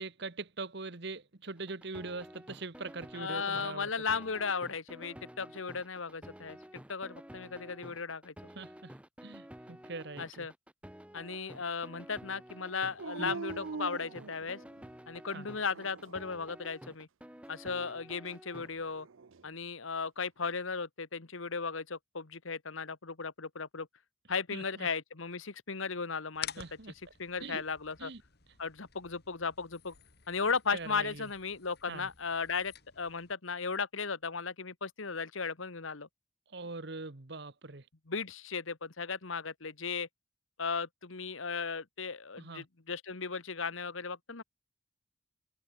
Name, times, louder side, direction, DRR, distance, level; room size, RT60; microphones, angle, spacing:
voice 1, 0.0-3.9 8.5-10.5 13.2-13.3 15.3-15.5 24.5-24.9 26.6-26.9 27.4-27.6 28.0-28.2 30.7-31.3 31.9-32.1 36.5-37.8 42.4-42.7, right 3 dB, 55° right, 1.3 m, -42 dB
sound 1, 1.6-18.7, equal, 5° right, 1.4 m, -51 dB
voice 2, 3.1-8.3 10.2-10.5 11.1-14.6 15.1-17.1 17.5-19.1 19.4-23.9 24.3-26.6 27.2-28.1 28.6-29.9 30.3-36.1 38.1-40.1 40.6-44.4, left 5 dB, 80° left, 1.5 m, -36 dB
Dog, 13.0-14.9 15.5-16.3 18.6-19.4, right 4 dB, 80° right, 0.6 m, -43 dB
sound 2, 26.3-33.3, left 10 dB, 50° left, 2.5 m, -50 dB
head